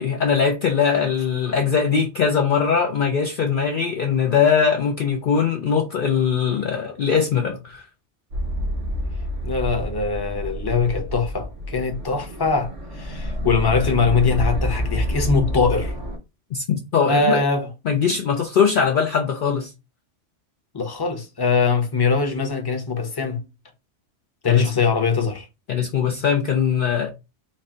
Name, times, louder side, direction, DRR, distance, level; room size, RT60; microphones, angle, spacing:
voice 1, 0.0-7.8 16.5-17.4 17.9-19.7 24.5-24.7 25.7-27.1, left 6 dB, 55° left, 0.6 m, -21 dB
sound 1, 8.3-16.2, equal, 90° right, 1.3 m, -28 dB
voice 2, 9.4-15.9 17.0-17.7 20.7-23.4 24.4-25.5, left 4 dB, 25° left, 0.8 m, -22 dB
4.3 x 2.2 x 3.7 m
omnidirectional pair, 1.2 m